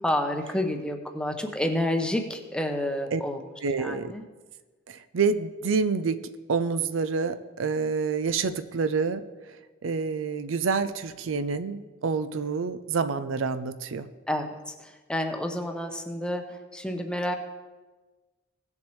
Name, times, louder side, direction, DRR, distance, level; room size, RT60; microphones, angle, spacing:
voice 1, 0.0-3.4 3.8-4.2 14.3-17.3, left 1 dB, 5° left, 4 dB, 0.8 m, -29 dB
voice 2, 3.6-4.1 4.9-9.2 9.8-14.1, right 5 dB, 80° right, 12 dB, 0.5 m, -28 dB
17.0 x 7.2 x 3.2 m, 1.3 s
head